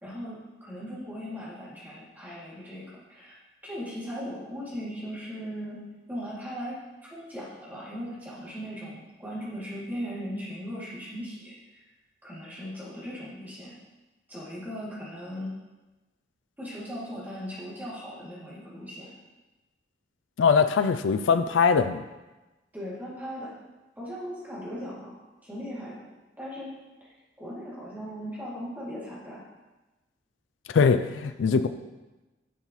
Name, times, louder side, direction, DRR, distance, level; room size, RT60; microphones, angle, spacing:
voice 1, 0.0-3.4 3.6-5.8 6.1-6.8 7.1-11.5 12.2-13.7 14.3-15.5 16.6-19.1 22.7-23.5 24.0-25.2 25.4-26.0 26.4-26.7 27.4-29.4, equal, 10° right, -8 dB, 2.5 m, -38 dB
voice 2, 20.4-22.0 30.7-31.7, left 5 dB, 85° left, 9 dB, 0.4 m, -22 dB
10.5 x 5.7 x 3.1 m, 1.1 s
head